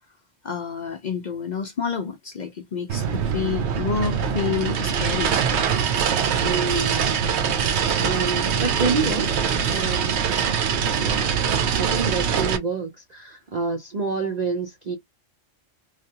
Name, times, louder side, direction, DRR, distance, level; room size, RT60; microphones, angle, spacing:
voice 1, 0.4-5.3, left 6 dB, 55° left, 0.5 m, -29 dB
sound 1, 2.9-12.6, right 7 dB, 65° right, 0.8 m, -23 dB
voice 2, 6.4-7.2 8.0-10.2 11.0-11.3 11.7-15.0, right 4 dB, 50° right, 0.5 m, -28 dB
3.2 x 2.4 x 2.7 m
omnidirectional pair, 1.3 m